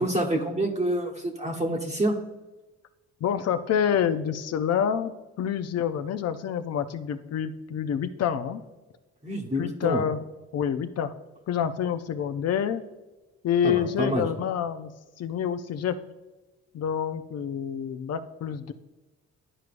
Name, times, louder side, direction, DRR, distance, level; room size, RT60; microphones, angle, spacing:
voice 1, 0.0-2.2 9.2-10.0 13.6-14.3, right 1 dB, 20° right, -2 dB, 1.1 m, -27 dB
voice 2, 3.2-8.6 9.6-10.2 10.5-11.1 11.5-12.9 13.4-14.9 15.2-16.0 16.7-18.7, left 8 dB, 55° left, 10 dB, 0.6 m, -27 dB
11.0 x 4.7 x 2.5 m, 1.1 s
cardioid pair, 90°, 30 cm